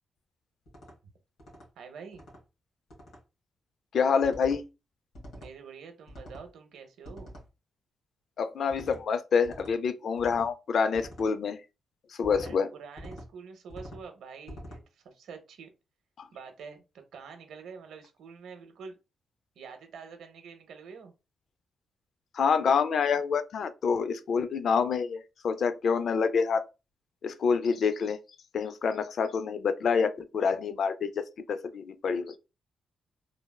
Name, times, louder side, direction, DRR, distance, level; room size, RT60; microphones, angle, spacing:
sound 1, 0.7-0.9 1.4-1.7 2.1-2.4 2.9-3.2 4.2-4.6 5.1-5.5 6.1-6.5 7.0-7.5 8.7-9.0 9.4-9.7 10.2-10.5 10.9-11.3 12.2-12.6 13.0-13.3 13.7-14.0 14.5-14.8, equal, 85° left, 1.4 m, -45 dB
voice 1, 1.8-2.3 5.3-7.4 12.4-15.7 16.3-16.8 17.1-19.0 19.6-21.1, right 5 dB, 90° right, 0.6 m, -46 dB
voice 2, 3.9-4.6 8.4-11.6 12.2-12.7 16.2-16.3 22.3-26.6 27.2-28.2 28.5-32.4, left 6 dB, 65° left, 0.3 m, -27 dB
3.2 x 2.1 x 2.2 m
cardioid pair, 90°, 0 cm